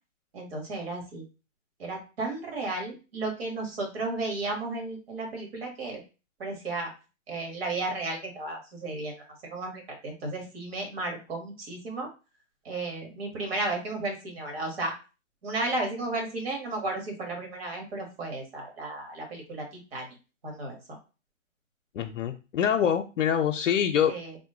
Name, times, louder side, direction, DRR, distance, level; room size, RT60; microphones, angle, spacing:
voice 1, 0.3-1.2 1.8-6.0 6.4-6.9 7.3-9.2 9.4-12.1 12.6-14.9 15.4-19.6 19.9-20.1 20.4-20.8 24.1-24.4, right 2 dB, 50° right, 2 dB, 1.6 m, -33 dB
voice 2, 21.9-24.2, left 8 dB, 65° left, 5 dB, 0.5 m, -25 dB
3.5 x 2.2 x 3.8 m, 0.32 s
hypercardioid pair, 150°, 39 cm